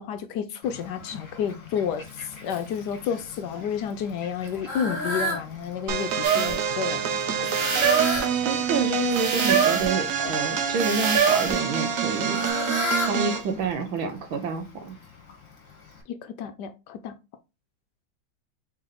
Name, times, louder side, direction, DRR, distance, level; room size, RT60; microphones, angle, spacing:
voice 1, 0.0-7.2 7.5-7.6 16.1-17.2, left 8 dB, 70° left, 1.0 m, -31 dB
Fowl, 0.6-16.0, left 1 dB, 45° left, 1.6 m, -36 dB
sound 1, 5.9-13.5, right 7 dB, 70° right, 0.8 m, -27 dB
sound 2, 6.2-6.6 7.4-8.3 9.1-9.9 10.8-11.6 12.4-12.5, right 6 dB, 45° right, 1.6 m, -24 dB
voice 2, 8.4-12.4 13.1-15.0, right 4 dB, 85° right, 1.7 m, -28 dB
4.2 x 3.3 x 3.8 m
omnidirectional pair, 2.1 m